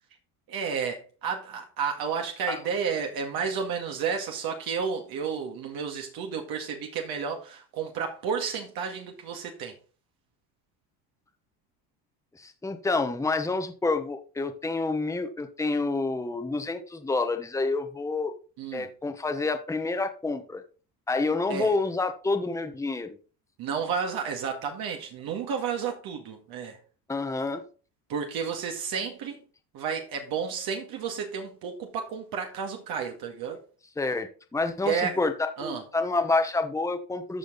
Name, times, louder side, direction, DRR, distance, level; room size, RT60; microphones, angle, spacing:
voice 1, 0.5-9.7 18.6-18.9 21.5-21.7 23.6-26.8 28.1-29.4 29.7-33.6 34.9-35.2 35.6-35.8, right 6 dB, 65° right, 2.0 m, -31 dB
voice 2, 12.4-18.3 18.7-20.6 21.1-23.2 27.1-27.6 34.0-35.3 35.6-37.4, left 3 dB, 10° left, 1.0 m, -28 dB
13.5 x 5.0 x 4.0 m
cardioid pair, 120°, 39 cm